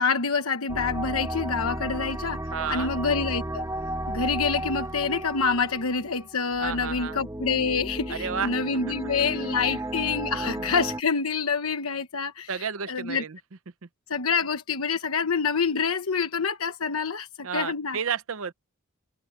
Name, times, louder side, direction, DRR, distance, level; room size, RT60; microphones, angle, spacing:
voice 1, 0.0-2.4 2.7-3.7 4.1-13.2 14.1-18.0, left 5 dB, 90° left, 1.1 m, -27 dB
sound 1, 0.7-11.0, right 1 dB, 15° right, 1.4 m, -34 dB
voice 2, 2.5-2.9 6.6-7.2 8.1-8.5 9.6-9.8 10.3-10.7 12.5-13.4 17.4-18.5, right 6 dB, 70° right, 0.8 m, -32 dB
head